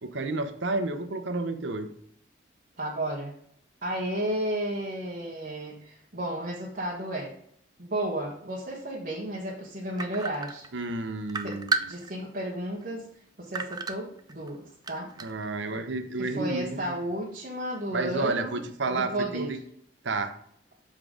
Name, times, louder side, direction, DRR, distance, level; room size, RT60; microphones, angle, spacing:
voice 1, 0.0-1.9 10.7-11.9 15.2-16.9 17.9-19.6 20.0-20.3, right 3 dB, 75° right, 7 dB, 0.8 m, -31 dB
voice 2, 2.8-3.3 3.8-7.3 7.8-10.7 11.4-11.6 11.8-13.0 13.4-14.6 14.9-15.1 16.2-18.6 18.9-19.5, right 1 dB, 45° right, -5 dB, 1.3 m, -33 dB
sound 1, 10.0-10.9 11.3-12.4 12.8-12.9 13.5-14.5 14.8-15.4, right 4 dB, 20° right, 0.3 m, -31 dB
7.3 x 3.7 x 4.9 m, 0.68 s
head